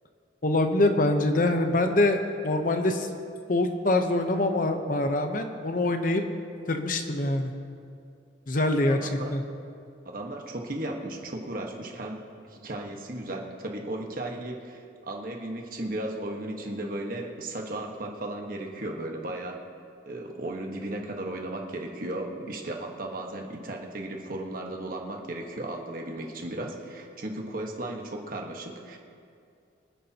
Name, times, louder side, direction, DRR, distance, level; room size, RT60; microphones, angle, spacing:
voice 1, 0.4-3.1 3.5-6.2 6.7-7.5 8.5-9.4, left 2 dB, 45° left, 5 dB, 0.9 m, -24 dB
voice 2, 8.9-9.3 10.0-19.6 20.1-29.0, right 1 dB, 50° right, 1 dB, 1.4 m, -35 dB
25.0 x 9.9 x 2.9 m, 2.4 s
head